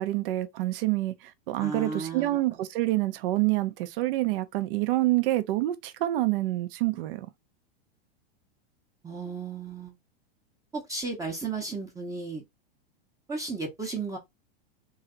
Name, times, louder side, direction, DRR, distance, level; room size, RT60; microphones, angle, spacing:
voice 1, 0.0-7.3, right 17 dB, 60° right, 0.6 m, -27 dB
voice 2, 1.6-2.4 9.0-9.9 10.7-12.4 13.3-14.2, right 4 dB, 10° right, 0.7 m, -34 dB
3.1 x 2.8 x 3.8 m
supercardioid pair, 140°, 31 cm